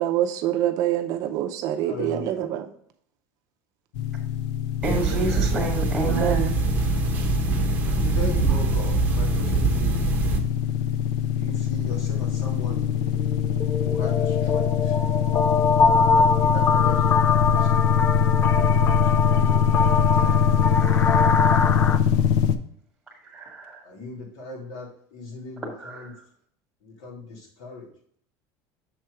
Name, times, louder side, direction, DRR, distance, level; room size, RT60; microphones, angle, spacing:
voice 1, 0.0-2.7 6.1-6.6, right 11 dB, 45° right, 6 dB, 0.6 m, -25 dB
voice 2, 1.9-2.4 4.9-5.4 6.9-7.0 8.0-10.0 11.3-12.8 13.8-14.9 16.1-17.7 18.3-19.0 19.3-21.4 22.0-22.1 23.8-26.1 26.8-27.9, left 2 dB, 60° left, -1 dB, 2.7 m, -38 dB
sound 1, 3.9-22.6, left 8 dB, 80° left, 0.7 m, -23 dB
voice 3, 4.8-6.5 23.3-23.8 25.8-26.1, right 2 dB, ahead, -2 dB, 1.8 m, -29 dB
sound 2, 4.8-10.4, right 6 dB, 20° right, 0.9 m, -24 dB
sound 3, 12.3-12.4 12.7-22.0, left 4 dB, 20° left, 0.3 m, -24 dB
7.2 x 4.5 x 4.8 m, 0.64 s
cardioid pair, 170°, 9 cm